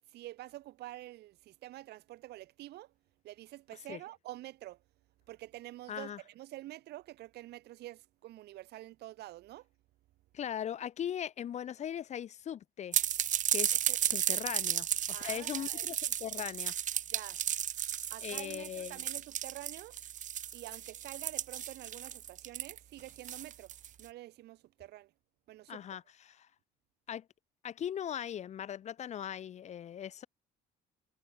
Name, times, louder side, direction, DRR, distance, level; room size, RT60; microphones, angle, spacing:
voice 1, 0.1-2.9 3.2-4.8 5.3-9.7 13.9-14.0 14.3-14.4 15.1-15.9 17.1-17.4 18.1-20.0 20.5-23.7 24.0-25.1 25.5-25.8, right 16 dB, 75° right, 1.9 m, -48 dB
voice 2, 5.9-6.2 10.3-13.0 13.5-13.8 14.0-16.8 18.2-19.0 25.7-26.5 27.1-27.3 27.6-30.3, left 9 dB, 45° left, 0.6 m, -39 dB
sound 1, 12.9-24.0, right 10 dB, 50° right, 0.9 m, -34 dB
cardioid pair, 110°, 17 cm